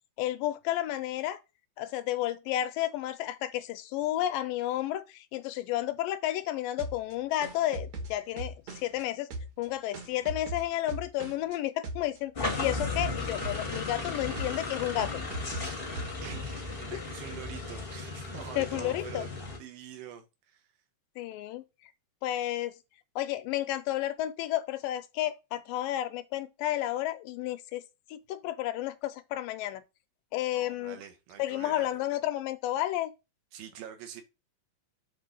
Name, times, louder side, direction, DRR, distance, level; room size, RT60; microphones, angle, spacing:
voice 1, 0.2-1.4 1.8-9.3 9.6-15.2 16.9-17.0 18.6-19.3 21.2-21.6 22.2-22.7 23.2-27.8 28.1-29.8 30.3-31.0 31.4-33.1, left 14 dB, 85° left, 2.3 m, -32 dB
sound 1, 6.8-9.0 9.3-11.6 11.8-12.2 12.5-14.1 14.4-14.7 15.0-16.6, right 2 dB, 60° right, 2.1 m, -40 dB
sound 2, 12.3-19.6, left 3 dB, 45° left, 0.7 m, -36 dB
voice 2, 16.2-19.3 19.6-20.7 30.5-32.0 33.5-34.2, right 9 dB, 80° right, 2.8 m, -45 dB
7.3 x 3.8 x 5.3 m
omnidirectional pair, 4.0 m